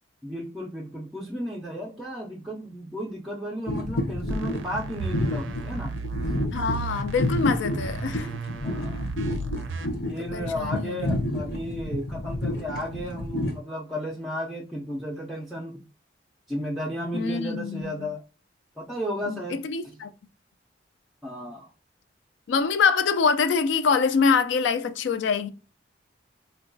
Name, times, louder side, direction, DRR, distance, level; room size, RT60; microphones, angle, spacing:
voice 1, 0.2-5.9 8.6-9.1 10.1-15.8 16.5-18.2 18.8-20.0 21.2-21.7, equal, ahead, 0.4 m, -34 dB
sound 1, 3.7-13.5, left 1 dB, 55° left, 0.7 m, -30 dB
sound 2, 4.3-9.9, right 5 dB, 90° right, 0.4 m, -35 dB
voice 2, 6.5-8.3 10.2-11.1 17.1-18.1 19.2-20.1 22.5-25.5, left 5 dB, 75° left, 0.3 m, -25 dB
3.7 x 2.2 x 2.6 m
head